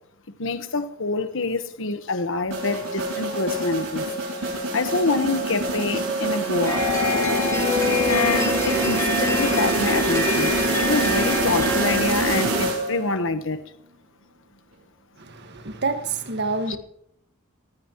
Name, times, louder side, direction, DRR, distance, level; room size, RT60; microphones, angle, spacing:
voice 1, 0.4-4.1 4.4-6.9 8.1-13.6 16.7-16.8, left 3 dB, 65° left, 1.3 m, -26 dB
sound 1, 2.5-13.2, right 2 dB, 75° right, 6.6 m, -25 dB
sound 2, 6.7-12.0, left 3 dB, 15° left, 4.6 m, -26 dB
voice 2, 15.2-16.8, right 3 dB, 55° right, 1.7 m, -28 dB
19.0 x 16.5 x 3.1 m
head